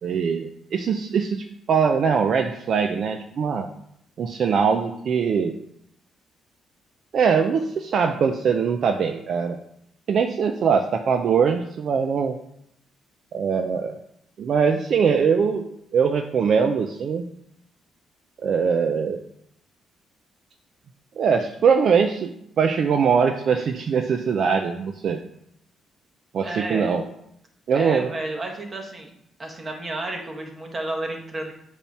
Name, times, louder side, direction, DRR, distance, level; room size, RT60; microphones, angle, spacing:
voice 1, 0.0-3.7 4.2-5.6 7.1-9.6 10.1-12.4 13.3-14.0 14.4-17.3 18.4-19.2 21.2-25.2 26.3-27.1 27.7-28.1, right 6 dB, 60° right, 6 dB, 0.4 m, -22 dB
voice 2, 26.4-26.9 27.7-29.1 29.4-31.5, right 2 dB, 30° right, 1 dB, 1.4 m, -31 dB
7.0 x 3.0 x 5.6 m, 0.73 s
cardioid pair, 90°, 0 cm